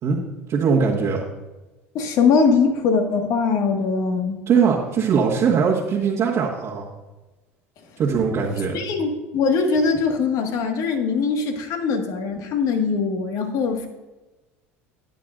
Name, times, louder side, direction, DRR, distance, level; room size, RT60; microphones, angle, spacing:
voice 1, 0.5-1.2 4.5-6.9 8.0-8.8, right 6 dB, 45° right, -5 dB, 1.6 m, -20 dB
voice 2, 1.9-4.4 8.7-13.9, left 5 dB, 55° left, 4 dB, 1.8 m, -21 dB
13.0 x 10.0 x 2.6 m, 1.1 s
hypercardioid pair, 75°, 7 cm